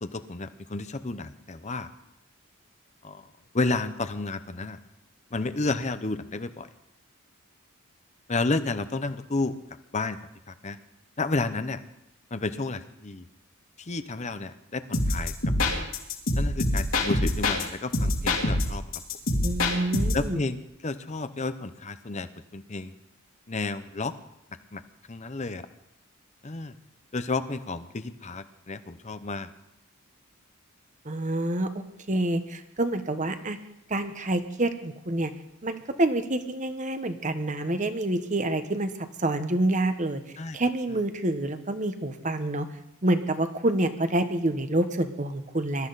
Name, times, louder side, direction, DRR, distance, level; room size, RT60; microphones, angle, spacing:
voice 1, 0.0-1.9 3.0-3.2 3.5-4.8 5.3-6.7 8.3-9.5 9.9-10.2 10.5-10.8 11.2-11.8 12.3-13.3 13.8-15.3 15.7-15.9 16.3-18.8 20.1-20.6 20.8-22.3 22.5-22.9 23.5-24.1 24.7-24.8 25.1-25.7 26.4-26.7 27.1-29.5 40.4-40.6, left 3 dB, 35° left, 11 dB, 0.8 m, -31 dB
sound 1, 14.9-17.6 17.9-20.3, left 1 dB, 70° left, 2.8 m, -25 dB
voice 2, 19.4-20.4 31.0-33.6 33.9-35.3 35.6-38.9 39.2-40.2 40.5-42.7 43.0-45.9, right 1 dB, 35° right, 9 dB, 1.1 m, -27 dB
21.0 x 13.0 x 4.1 m, 0.86 s
head